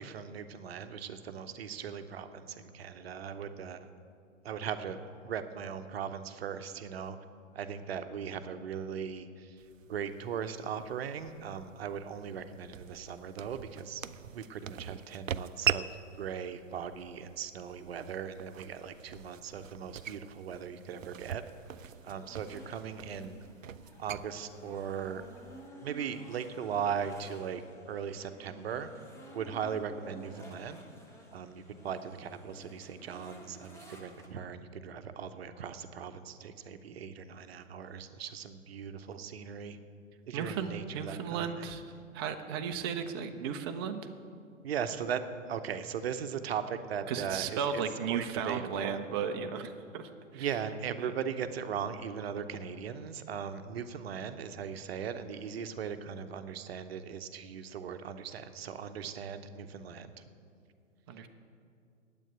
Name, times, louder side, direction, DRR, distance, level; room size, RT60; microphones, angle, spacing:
voice 1, 0.0-3.9 4.4-7.2 7.5-14.0 14.3-21.4 22.0-23.4 24.0-25.2 25.8-27.6 27.9-28.9 29.3-30.8 31.3-39.8 40.3-41.7 44.6-47.8 48.1-49.0 50.3-60.2, right 7 dB, 50° right, 10 dB, 0.9 m, -38 dB
sound 1, 9.6-25.7, right 9 dB, 80° right, 0.5 m, -41 dB
sound 2, 21.2-34.3, equal, 5° left, 1.1 m, -53 dB
voice 2, 40.3-41.8 42.1-44.0 47.1-50.5 51.0-51.1 61.1-61.3, right 7 dB, 20° right, 7 dB, 0.5 m, -35 dB
9.1 x 8.6 x 9.0 m, 2.4 s
figure-of-eight pair, 125°, 39 cm